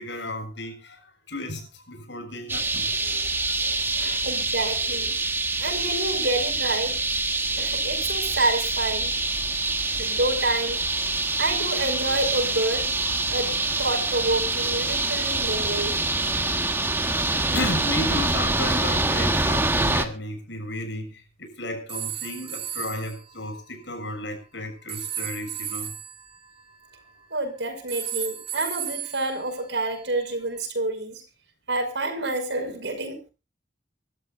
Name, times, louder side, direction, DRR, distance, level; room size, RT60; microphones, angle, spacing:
voice 1, 0.0-4.3 11.3-11.4 13.4-13.6 17.5-25.9, left 1 dB, 80° left, 5 dB, 7.1 m, -34 dB
sound 1, 2.5-20.1, right 2 dB, 10° right, 1.4 m, -25 dB
voice 2, 4.2-5.2 5.6-7.0 7.6-9.1 10.0-10.8 11.4-12.9 13.3-16.0 27.3-31.2 31.7-33.2, right 2 dB, 75° right, 7 dB, 5.7 m, -28 dB
sound 2, 21.9-23.2 24.9-27.4 27.9-30.2, right 9 dB, 35° right, 2.5 m, -35 dB
25.5 x 13.5 x 2.5 m, 0.31 s
head